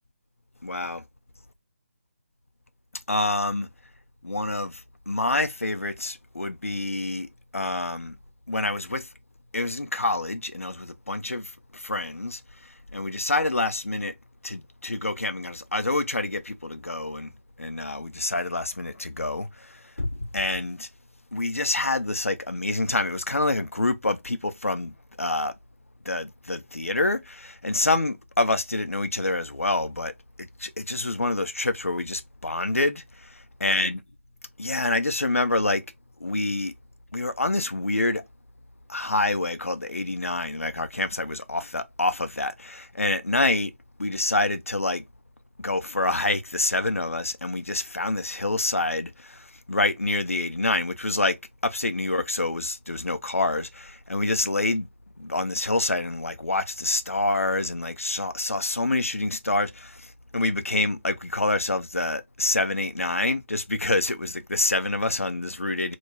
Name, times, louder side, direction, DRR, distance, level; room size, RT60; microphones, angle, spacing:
voice 1, 0.6-1.0 3.1-3.7 4.2-8.2 8.5-9.1 9.5-14.1 14.4-17.3 17.6-20.9 21.3-25.5 26.1-34.0 34.6-35.8 36.2-36.7 37.1-38.2 38.9-43.7 44.0-45.0 45.6-54.9 55.2-66.0, left 2 dB, 85° left, 0.5 m, -27 dB
2.3 x 2.1 x 3.3 m
figure-of-eight pair, 150°, 7 cm